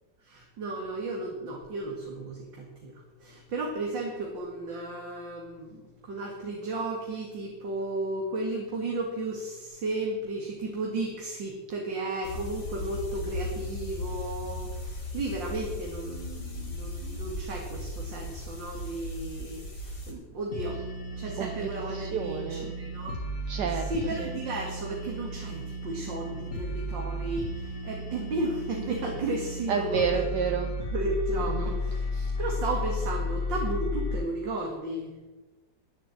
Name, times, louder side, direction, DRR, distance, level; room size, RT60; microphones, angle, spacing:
voice 1, 0.2-20.8 21.2-23.2 23.4-30.3 30.9-35.1, right 2 dB, 90° right, -1 dB, 2.7 m, -34 dB
sound 1, 12.2-20.1, left 2 dB, 65° left, 3.7 m, -37 dB
sound 2, 20.5-34.2, left 1 dB, 45° left, 2.0 m, -34 dB
voice 2, 21.9-22.8 23.5-23.9 24.2-24.3 29.7-30.7 31.6-31.8, right 6 dB, 70° right, 5 dB, 1.5 m, -30 dB
11.0 x 10.5 x 7.7 m, 1.2 s
omnidirectional pair, 1.9 m